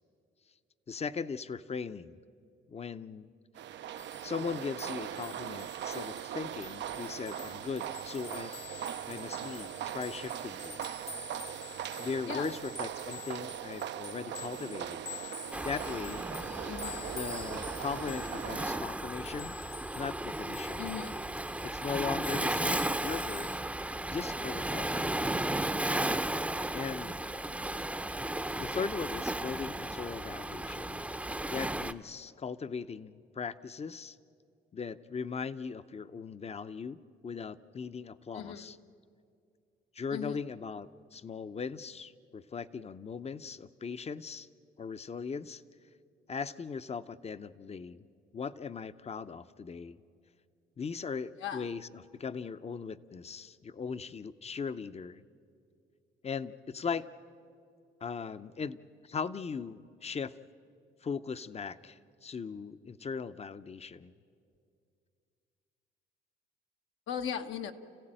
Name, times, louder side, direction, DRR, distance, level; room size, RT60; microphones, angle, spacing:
voice 1, 0.9-2.2 2.7-3.3 4.2-8.5 9.1-10.8 12.0-15.0 15.6-16.2 17.1-19.6 19.9-20.9 21.6-23.6 24.1-25.3 26.7-27.2 28.6-31.0 31.5-34.2 34.7-37.0 37.2-38.8 39.9-44.5 44.8-45.6 46.3-48.1 48.3-50.0 50.8-55.2 56.2-57.1 58.0-60.3 61.0-64.1, left 5 dB, 30° left, 14 dB, 0.7 m, -39 dB
sound 1, 3.6-18.8, right 10 dB, 65° right, 0.6 m, -40 dB
sound 2, 4.0-23.6, left 4 dB, 55° left, 1.5 m, -48 dB
voice 2, 12.3-12.6 16.7-17.1 20.8-21.2 38.3-38.7 40.1-40.4 51.4-51.7 67.1-67.7, left 8 dB, 80° left, 6 dB, 1.2 m, -38 dB
Waves surf, 15.5-31.9, right 1 dB, 5° right, 0.7 m, -35 dB
29.5 x 15.5 x 9.0 m, 2.5 s
cardioid pair, 90°, 20 cm